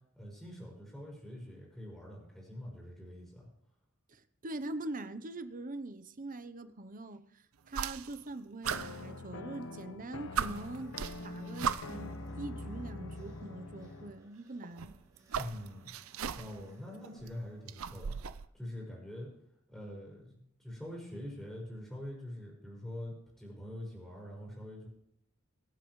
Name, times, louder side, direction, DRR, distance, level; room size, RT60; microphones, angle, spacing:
voice 1, 0.1-3.5 15.3-15.9 16.3-19.3 19.7-24.9, left 1 dB, 5° left, 5.1 m, -45 dB
voice 2, 4.1-11.0 11.2-14.9, right 2 dB, 40° right, 0.8 m, -43 dB
sound 1, 7.7-8.3 8.6-9.7 10.0-10.1 10.3-12.1 13.2-13.3 14.6-16.7 17.0-18.5, right 7 dB, 75° right, 0.6 m, -38 dB
sound 2, 8.6-14.2, left 2 dB, 65° left, 0.9 m, -44 dB
sound 3, 10.1-18.5, right 2 dB, 20° right, 4.6 m, -66 dB
23.5 x 8.5 x 3.2 m
head